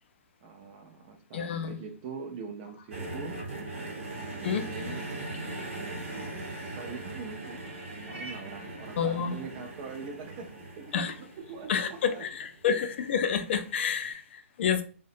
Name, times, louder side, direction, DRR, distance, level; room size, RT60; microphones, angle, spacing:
voice 1, 0.4-3.4 4.5-5.1 6.7-7.6 7.9-12.3, right 5 dB, 35° right, 0.5 m, -43 dB
voice 2, 1.3-1.7 4.4-4.7 9.0-9.3 10.9-11.1 11.7-14.8, left 7 dB, 55° left, 0.4 m, -29 dB
sound 1, 2.9-13.1 14.0-14.1, right 2 dB, 60° right, 0.9 m, -40 dB
2.4 x 2.1 x 2.7 m
hypercardioid pair, 130°, 7 cm